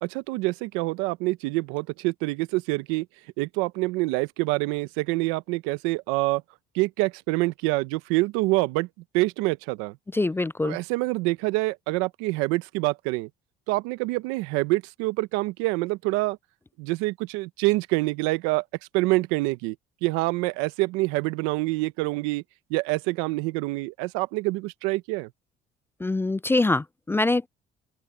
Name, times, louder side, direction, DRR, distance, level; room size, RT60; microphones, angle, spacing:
voice 1, 0.0-3.1 3.4-6.4 6.7-8.9 9.1-10.0 10.6-13.3 13.7-16.4 16.8-18.6 18.9-19.8 20.0-22.4 22.7-25.3, right 22 dB, 90° right, 0.9 m, -26 dB
voice 2, 10.1-10.8 26.0-27.5, left 2 dB, 10° left, 0.3 m, -24 dB
open air
supercardioid pair, 80°, 21 cm